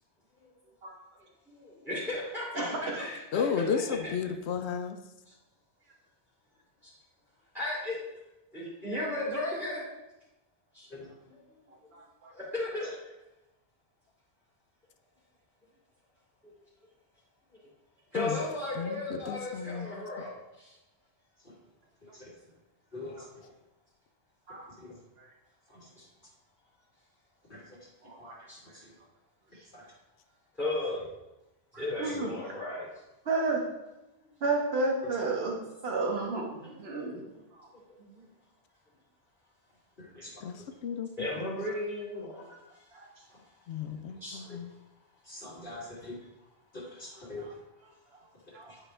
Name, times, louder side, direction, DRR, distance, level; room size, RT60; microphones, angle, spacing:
voice 1, 1.5-4.1 7.5-8.0 8.5-9.9 10.7-10.9 12.3-12.9 18.1-20.7 28.5-28.6 30.6-31.1 31.8-32.9 36.6-37.1 38.0-38.3 41.2-42.5 44.2-44.4, left 2 dB, ahead, -10 dB, 2.8 m, -35 dB
voice 2, 2.5-3.0 11.9-12.3 24.5-24.7 28.0-28.4 32.0-32.3 33.3-33.6 34.4-35.5 35.8-37.2 37.6-37.7 42.9-43.0 48.5-48.6, right 3 dB, 65° right, 0 dB, 1.4 m, -31 dB
voice 3, 3.3-5.0 18.1-18.4 18.8-19.9 40.4-40.5 40.8-41.6 43.7-44.7, left 7 dB, 75° left, 8 dB, 0.9 m, -33 dB
voice 4, 22.0-22.4 22.9-23.4 24.5-25.0 25.7-26.1 27.5-28.9 29.7-29.9 32.0-32.2 40.0-40.7 43.3-43.4 44.2-44.6 45.2-46.2 46.7-47.5 48.6-48.7, left 2 dB, 50° left, -7 dB, 2.1 m, -46 dB
9.8 x 4.9 x 3.3 m, 0.96 s
omnidirectional pair, 1.1 m